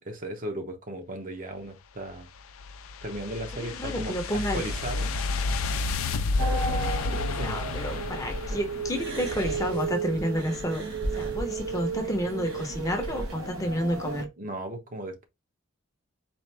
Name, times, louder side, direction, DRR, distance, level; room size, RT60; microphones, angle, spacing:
voice 1, 0.0-2.3 3.0-5.3 7.1-7.7 14.4-15.3, right 1 dB, 40° right, 0.7 m, -36 dB
sound 1, 2.1-9.4, left 3 dB, 80° left, 0.5 m, -31 dB
voice 2, 3.5-4.6 7.3-10.9 11.2-14.3, equal, 15° left, 0.7 m, -30 dB
sound 2, 4.2-8.5 8.8-13.3, equal, 60° right, 1.7 m, -39 dB
sound 3, 6.4-14.3, right 4 dB, 90° right, 0.8 m, -34 dB
4.3 x 2.4 x 3.2 m
head